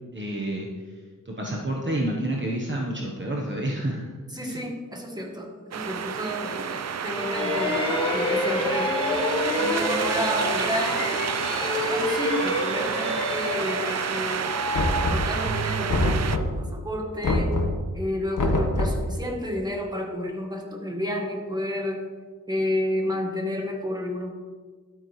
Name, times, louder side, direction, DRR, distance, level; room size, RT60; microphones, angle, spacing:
voice 1, 0.1-1.0 1.2-4.6, right 1 dB, 35° right, -2 dB, 1.1 m, -29 dB
voice 2, 4.3-7.8 8.1-8.9 9.6-11.0 11.5-14.6 15.0-17.5 17.9-22.0 22.5-24.3, equal, 10° right, 0 dB, 1.6 m, -31 dB
sound 1, 5.7-16.4, right 7 dB, 50° right, 0.5 m, -30 dB
sound 2, 7.2-15.8, left 1 dB, 15° left, 1.4 m, -28 dB
Knock, 14.7-15.5 15.9-16.7 17.2-17.9 18.4-19.1, left 1 dB, 65° left, 1.4 m, -24 dB
12.0 x 8.8 x 3.2 m, 1.5 s
wide cardioid pair, 120°, 33 cm